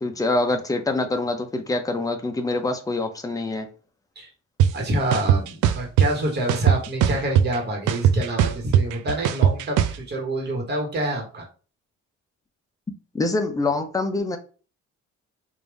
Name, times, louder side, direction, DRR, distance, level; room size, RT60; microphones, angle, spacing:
voice 1, 0.0-3.7 13.1-14.4, left 2 dB, 10° left, 5 dB, 0.7 m, -25 dB
sound 1, 4.6-4.7 5.1-6.1 6.5-7.6 7.9-10.0, right 9 dB, 90° right, 0.5 m, -18 dB
voice 2, 4.7-11.5, right 1 dB, 35° right, 0 dB, 1.4 m, -27 dB
3.3 x 2.6 x 3.5 m, 0.37 s
cardioid pair, 90°, 30 cm